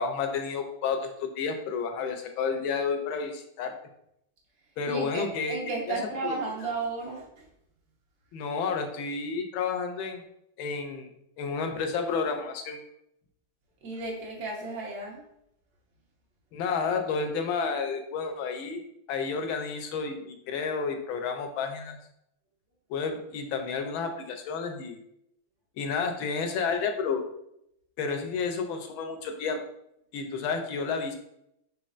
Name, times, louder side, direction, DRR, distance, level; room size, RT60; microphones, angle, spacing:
voice 1, 0.0-3.7 4.8-5.6 5.9-6.0 6.2-6.4 8.3-10.2 10.6-11.1 11.4-12.8 16.5-18.8 19.1-22.0 22.9-25.0 25.8-27.2 28.0-29.6 30.1-31.2, left 5 dB, 75° left, 5 dB, 1.4 m, -31 dB
voice 2, 4.9-7.5 13.8-15.2, right 3 dB, 55° right, -2 dB, 1.4 m, -34 dB
4.5 x 4.3 x 2.4 m, 0.77 s
omnidirectional pair, 2.3 m